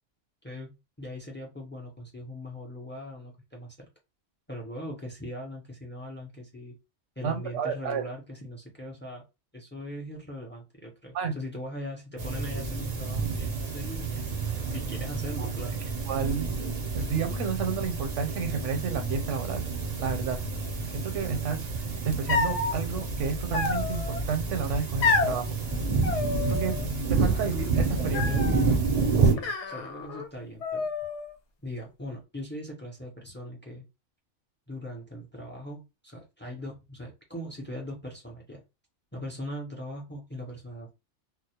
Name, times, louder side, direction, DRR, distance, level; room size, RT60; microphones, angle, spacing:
voice 1, 0.4-3.9 4.5-6.8 7.2-9.2 9.5-14.2 14.7-15.8 27.3-27.4 27.9-28.8 29.2-30.9 31.6-33.8 34.7-38.6 39.1-40.9, left 1 dB, 20° left, 0.3 m, -40 dB
voice 2, 7.2-8.0 11.1-11.4 15.4-15.5 16.1-16.5 16.9-19.6 20.0-20.4 20.9-21.7 22.0-25.6 26.4-26.7 27.1-28.2, right 6 dB, 80° right, 0.9 m, -31 dB
sound 1, 12.2-29.3, right 4 dB, 50° right, 0.5 m, -29 dB
sound 2, 22.3-22.7 23.5-24.2 25.0-25.4 26.0-26.9 27.1-27.7 28.1-28.7 29.4-30.3 30.6-31.3, left 4 dB, 70° left, 0.8 m, -29 dB
2.2 x 2.0 x 2.7 m
omnidirectional pair, 1.3 m